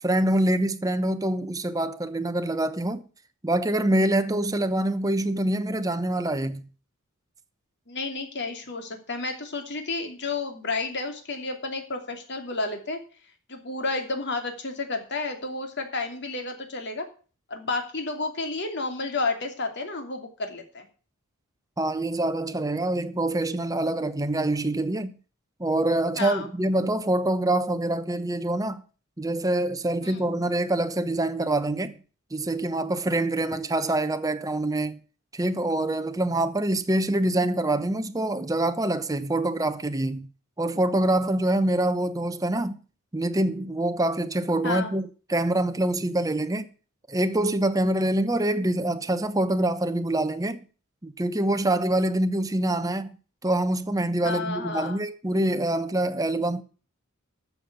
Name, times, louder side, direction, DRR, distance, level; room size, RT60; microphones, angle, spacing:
voice 1, 0.0-3.1 3.4-6.6 21.8-25.2 25.6-28.8 29.2-32.0 32.3-35.0 35.3-40.3 40.6-42.8 43.1-46.7 47.1-50.6 51.0-53.1 53.4-56.6, right 1 dB, 15° right, 0.9 m, -25 dB
voice 2, 7.9-13.0 13.5-17.1 17.5-20.9 26.2-26.5 30.0-30.2 44.6-44.9 54.2-55.0, left 3 dB, 50° left, 2.8 m, -31 dB
13.0 x 7.1 x 6.9 m
head